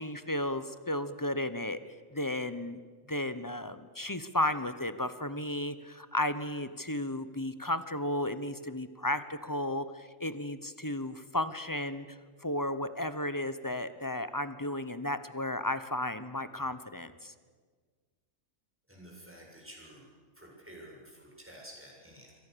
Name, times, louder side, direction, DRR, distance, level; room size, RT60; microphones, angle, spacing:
voice 1, 0.0-1.8 2.1-2.8 3.1-17.3, left 1 dB, 15° left, 12 dB, 0.8 m, -34 dB
voice 2, 18.9-20.1 20.3-22.4, equal, 10° right, -2 dB, 7.2 m, -51 dB
27.5 x 24.0 x 6.9 m, 1.5 s
omnidirectional pair, 1.4 m